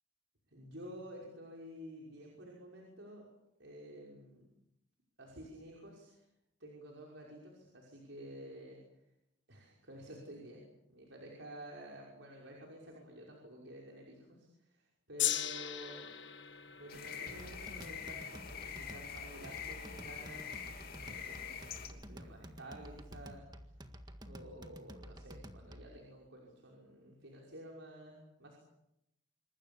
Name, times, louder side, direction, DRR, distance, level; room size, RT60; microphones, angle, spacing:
voice 1, 0.5-3.3 3.6-4.5 5.2-6.3 6.6-8.8 9.5-16.1 16.8-20.6 21.0-23.5 24.3-28.6, right 1 dB, 75° right, -2 dB, 5.7 m, -51 dB
Gong, 15.2-21.6 22.3-22.4, left 12 dB, 65° left, 1.7 m, -41 dB
sound 1, 16.9-21.9, left 7 dB, 50° left, 3.0 m, -45 dB
sound 2, 17.3-26.0, equal, 20° right, 1.7 m, -51 dB
27.0 x 25.0 x 7.1 m, 0.82 s
head